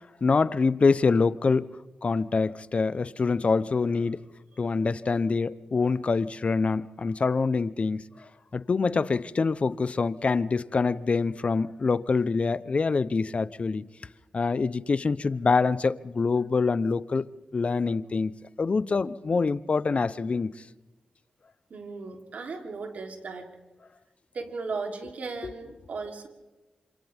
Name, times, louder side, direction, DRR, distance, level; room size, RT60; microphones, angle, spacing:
voice 1, 0.2-1.7 2.0-4.2 4.6-13.8 14.3-18.3 18.6-20.5, left 4 dB, 50° left, 0.9 m, -25 dB
voice 2, 21.7-23.5 24.3-26.3, right 4 dB, 70° right, 3.5 m, -36 dB
27.5 x 27.5 x 3.6 m
cardioid pair, 45°, 3 cm